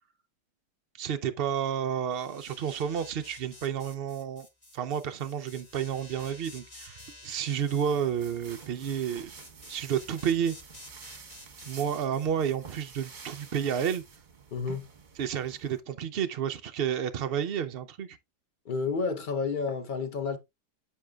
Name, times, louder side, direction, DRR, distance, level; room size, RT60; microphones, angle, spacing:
voice 1, 0.9-4.5 4.7-9.3 9.7-10.6 11.7-14.0 15.2-18.2, right 8 dB, 85° right, 0.5 m, -31 dB
sound 1, 2.1-13.1, left 2 dB, 20° left, 1.8 m, -52 dB
sound 2, 7.6-15.8, right 5 dB, 35° right, 0.9 m, -49 dB
voice 2, 14.5-14.9 18.6-20.4, left 4 dB, 45° left, 0.6 m, -30 dB
10.0 x 7.4 x 2.3 m
omnidirectional pair, 1.8 m